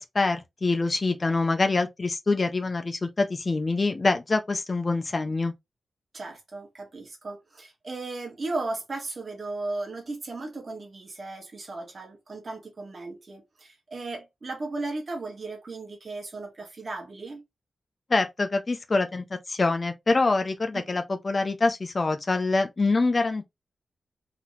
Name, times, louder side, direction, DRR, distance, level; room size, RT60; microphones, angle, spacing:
voice 1, 0.0-5.5 18.1-23.5, left 3 dB, 30° left, 0.7 m, -25 dB
voice 2, 6.1-17.4 20.7-21.0, right 2 dB, 40° right, 1.8 m, -36 dB
4.2 x 3.0 x 4.1 m
wide cardioid pair, 155°, 0 cm